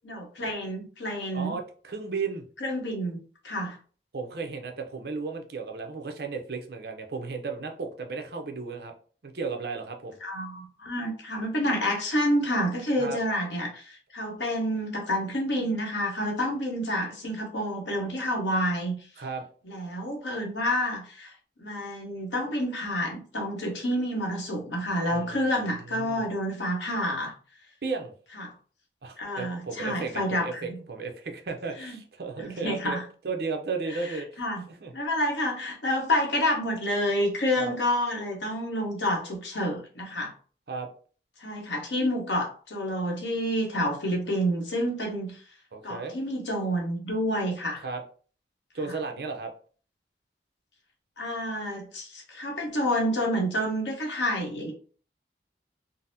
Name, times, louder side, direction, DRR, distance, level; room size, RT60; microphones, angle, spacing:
voice 1, 0.0-1.5 2.6-3.2 3.4-3.8 10.2-18.9 19.6-21.3 21.6-27.3 28.4-28.5 29.2-30.8 31.8-31.9 32.6-33.0 34.4-34.6 34.9-40.3 41.4-45.3 45.8-47.8 51.2-54.7, equal, 85° left, 0 dB, 1.0 m, -28 dB
voice 2, 1.3-2.5 4.1-8.9 9.2-10.2 13.0-13.2 19.2-19.4 25.1-25.5 25.8-26.3 27.8-28.1 29.0-33.0 33.2-34.4 34.7-34.9 37.6-37.7 40.7-40.9 45.7-46.2 47.8-48.0 48.7-49.5, right 4 dB, 60° right, 4 dB, 0.6 m, -34 dB
3.8 x 2.0 x 2.6 m, 0.41 s
head